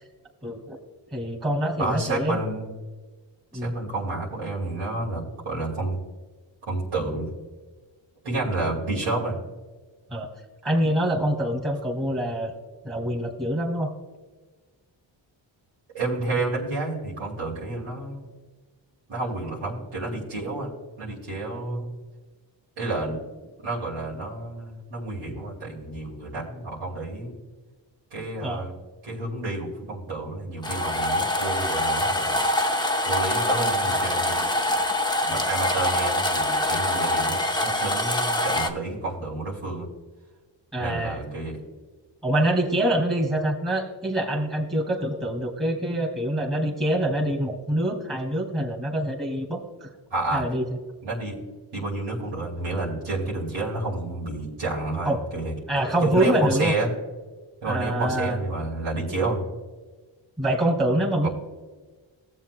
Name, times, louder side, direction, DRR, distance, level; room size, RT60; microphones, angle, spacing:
voice 1, 0.4-0.8 1.1-2.4 3.5-3.7 10.1-10.3 10.6-12.5 12.8-13.9 28.4-28.6 40.7-41.2 42.2-49.9 50.3-50.7 55.1-55.2 55.7-56.7 57.6-58.4 60.4-61.3, right 1 dB, 10° right, -1 dB, 2.1 m, -25 dB
voice 2, 1.8-2.7 3.5-6.0 6.7-7.3 8.2-9.4 15.9-18.2 19.1-20.7 21.0-21.9 22.8-23.2 23.6-27.4 28.1-28.7 29.0-32.4 33.1-34.4 35.2-39.9 40.8-41.6 50.1-50.5 51.0-51.4 51.7-55.5 56.0-56.9 57.6-59.5 61.2-61.3, right 2 dB, 85° right, -5 dB, 2.7 m, -30 dB
sound 1, 30.6-38.7, left 1 dB, 10° left, 0.9 m, -24 dB
17.5 x 7.5 x 2.2 m, 1.3 s
cardioid pair, 60°, 47 cm